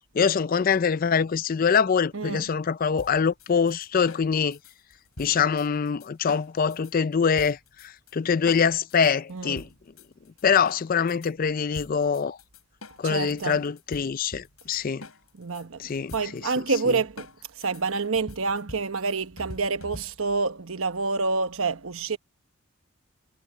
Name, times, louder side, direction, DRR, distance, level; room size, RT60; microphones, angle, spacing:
voice 1, 0.1-4.6 5.2-9.7 10.4-12.4 13.0-15.1 15.8-16.4 16.9-17.0, left 6 dB, 40° left, 0.4 m, -24 dB
voice 2, 2.1-2.4 9.3-9.6 13.0-13.6 15.4-17.3 17.6-22.2, right 4 dB, 65° right, 1.1 m, -28 dB
sound 1, 3.0-6.9 7.4-8.1 8.5-11.3 11.7-20.4, left 1 dB, 70° left, 7.4 m, -45 dB
head